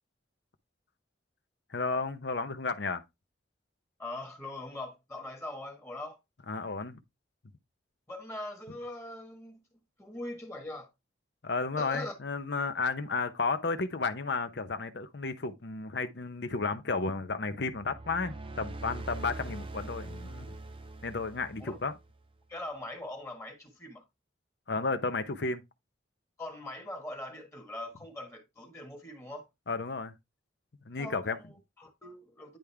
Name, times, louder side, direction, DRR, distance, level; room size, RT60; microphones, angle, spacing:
voice 1, 1.7-3.0 6.5-7.0 11.4-20.5 21.0-21.9 24.7-25.6 29.7-30.1 30.9-31.4, left 4 dB, 60° left, 0.8 m, -33 dB
voice 2, 4.0-6.2 8.1-9.6 10.0-10.9 11.8-12.1 21.6-21.8 22.5-24.0 26.4-29.5 31.0-32.6, left 1 dB, 15° left, 1.3 m, -42 dB
sound 1, 17.6-22.2, right 2 dB, 30° right, 0.6 m, -43 dB
10.0 x 3.6 x 3.4 m
head